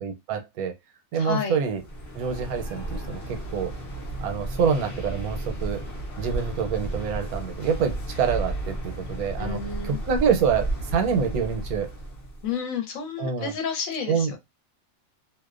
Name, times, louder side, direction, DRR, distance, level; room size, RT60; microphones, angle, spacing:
voice 1, 0.0-0.7 1.1-1.8 2.1-3.7 4.2-5.8 6.2-9.6 9.8-11.9 13.2-13.5 14.1-14.3, right 6 dB, 80° right, 1.1 m, -26 dB
voice 2, 1.1-1.6 9.4-10.0 12.4-14.4, left 6 dB, 70° left, 1.1 m, -31 dB
sound 1, 1.7-12.5, right 2 dB, 55° left, 0.7 m, -33 dB
2.6 x 2.0 x 2.3 m
omnidirectional pair, 1.5 m